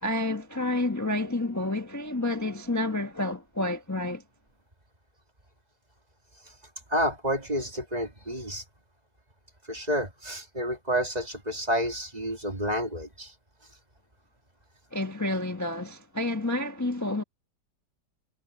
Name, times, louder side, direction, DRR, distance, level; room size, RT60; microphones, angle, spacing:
voice 1, 0.0-4.2 14.9-17.2, left 2 dB, 10° left, 1.3 m, -29 dB
voice 2, 6.9-8.6 9.7-13.3, equal, 25° right, 2.3 m, -29 dB
omnidirectional pair, 1.7 m